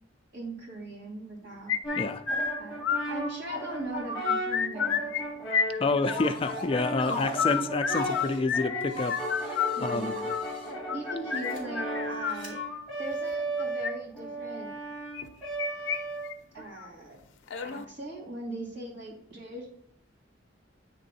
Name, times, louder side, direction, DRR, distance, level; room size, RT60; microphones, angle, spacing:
voice 1, 0.3-1.8 2.6-5.4 7.1-7.4 9.7-10.3 10.9-12.6 13.0-14.7 16.5-17.2 17.6-19.7, right 2 dB, 65° right, 2.4 m, -40 dB
sound 1, 1.7-3.6 3.9-5.2 5.5-6.5 7.2-12.8 13.6-13.9 15.1-16.0 16.2-16.3 16.8-16.9 17.5-17.8, left 7 dB, 80° left, 0.5 m, -30 dB
Brass instrument, 1.8-16.6, right 1 dB, ahead, 1.7 m, -36 dB
voice 2, 1.9-2.2 5.8-9.2 9.5-9.6 9.8-10.1, left 3 dB, 30° left, 0.3 m, -28 dB
sound 2, 6.0-6.7 7.0-8.4 8.9-10.7 11.3-11.6 12.3-12.5, left 2 dB, 40° right, 2.6 m, -38 dB
9.1 x 3.6 x 4.0 m
head